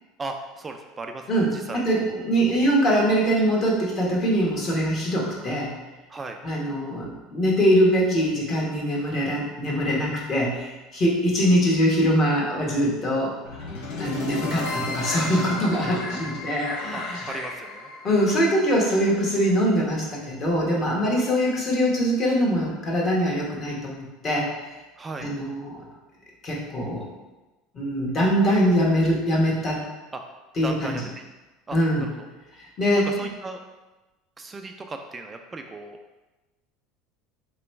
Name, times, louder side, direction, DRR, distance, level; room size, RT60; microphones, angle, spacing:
voice 1, 0.2-2.2 6.1-6.4 16.9-17.9 25.0-25.3 30.1-30.2 30.6-31.1 31.7-32.3 33.0-33.6 34.4-36.0, right 3 dB, 20° right, 5 dB, 0.3 m, -37 dB
voice 2, 1.3-5.7 6.4-13.6 14.0-17.3 18.0-24.7 25.2-25.8 26.4-27.0 27.7-29.8 30.6-31.0 31.7-32.0 32.8-33.1, equal, 35° left, -3 dB, 1.2 m, -23 dB
sound 1, 13.4-19.5, left 3 dB, 75° left, 0.8 m, -34 dB
3.0 x 3.0 x 4.5 m, 1.1 s
supercardioid pair, 125°, 0 cm